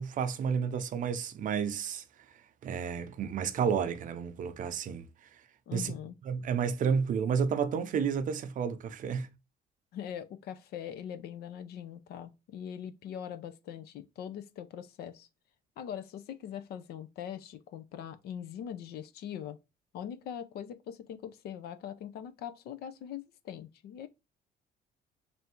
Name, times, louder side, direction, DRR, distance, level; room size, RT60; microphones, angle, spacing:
voice 1, 0.0-2.0 2.6-5.1 5.7-5.9 6.3-9.3, right 6 dB, 50° right, 0.6 m, -31 dB
voice 2, 5.7-6.1 9.9-15.3 15.8-19.6 19.9-24.1, left 9 dB, 70° left, 0.6 m, -42 dB
3.4 x 2.6 x 4.3 m
cardioid pair, 110°, 17 cm